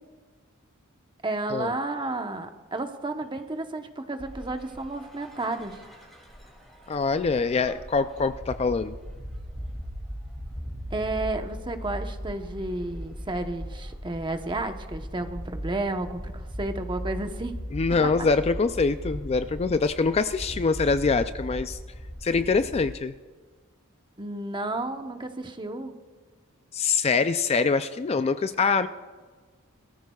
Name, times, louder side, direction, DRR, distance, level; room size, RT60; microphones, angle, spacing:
voice 1, 1.2-5.8 10.9-17.6 18.0-18.3 24.2-25.9, right 2 dB, 20° right, 6 dB, 0.9 m, -32 dB
sound 1, 4.2-22.9, equal, ahead, 2.5 m, -38 dB
voice 2, 6.9-9.0 17.7-21.8 22.2-23.1 26.7-28.9, left 4 dB, 30° left, 11 dB, 0.4 m, -24 dB
21.0 x 14.0 x 2.3 m, 1.5 s
head